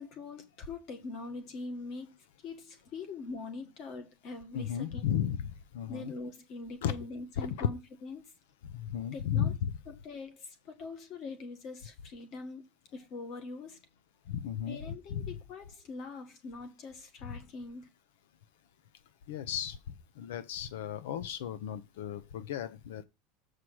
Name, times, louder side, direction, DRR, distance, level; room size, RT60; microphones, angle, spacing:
voice 1, 0.0-2.1 2.4-5.2 5.9-8.2 9.1-9.5 9.9-12.7 12.9-13.8 14.7-17.9, left 3 dB, 35° left, 1.6 m, -43 dB
voice 2, 4.5-6.1 6.8-6.9 7.4-7.7 8.7-9.7 14.3-14.8 15.1-15.3 17.2-17.4 19.3-19.8 20.2-23.0, left 9 dB, 85° left, 0.6 m, -34 dB
7.5 x 4.8 x 6.1 m
supercardioid pair, 175°, 0 cm